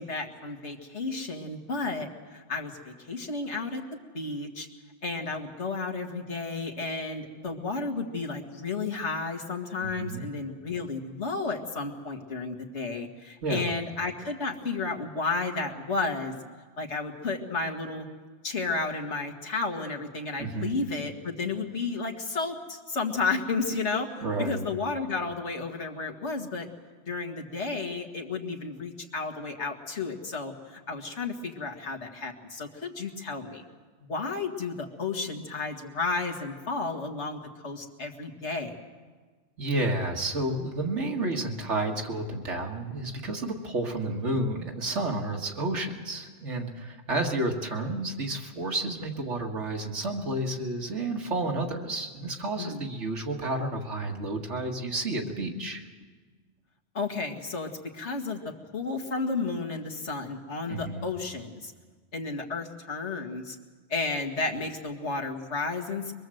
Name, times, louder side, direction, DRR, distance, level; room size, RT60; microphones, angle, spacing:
voice 1, 0.0-3.8 4.1-4.7 5.0-16.3 16.8-18.1 18.4-26.7 27.1-33.6 34.1-38.8 52.6-52.8 56.9-57.7 57.9-61.7 62.1-63.6 63.9-66.1, left 3 dB, 75° left, 2 dB, 2.2 m, -32 dB
voice 2, 20.4-20.7 24.2-24.7 39.6-55.8 60.7-61.0, right 2 dB, 90° right, 2 dB, 2.3 m, -31 dB
23.0 x 22.5 x 7.8 m, 1.5 s
omnidirectional pair, 1.2 m